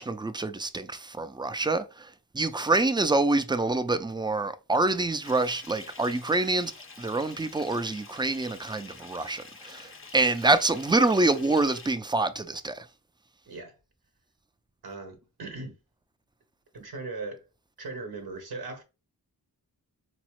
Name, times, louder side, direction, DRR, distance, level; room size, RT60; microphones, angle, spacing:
voice 1, 0.0-6.7 7.0-12.9, right 2 dB, 15° right, 0.3 m, -26 dB
Bathtub (filling or washing) / Fill (with liquid), 5.2-11.9, left 3 dB, 35° left, 0.6 m, -47 dB
voice 2, 14.8-15.7 16.7-17.4 17.8-18.8, right 3 dB, 70° right, 0.7 m, -38 dB
3.9 x 2.1 x 2.9 m
cardioid pair, 55°, 39 cm